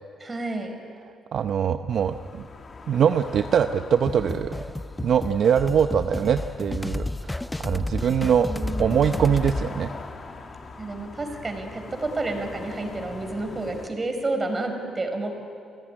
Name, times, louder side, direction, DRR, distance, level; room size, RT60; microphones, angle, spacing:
voice 1, 0.2-0.8 8.4-9.3 10.8-15.3, right 2 dB, 30° right, 5 dB, 4.9 m, -30 dB
voice 2, 1.3-2.2 2.9-4.6 5.0-8.5 8.8-9.9, right 8 dB, 60° right, 8 dB, 0.7 m, -22 dB
sound 1, 1.9-13.9, left 4 dB, 40° left, 2.4 m, -42 dB
sound 2, 4.1-9.7, left 1 dB, 10° left, 0.5 m, -31 dB
28.5 x 16.5 x 9.9 m, 2.6 s
cardioid pair, 90°, 0 cm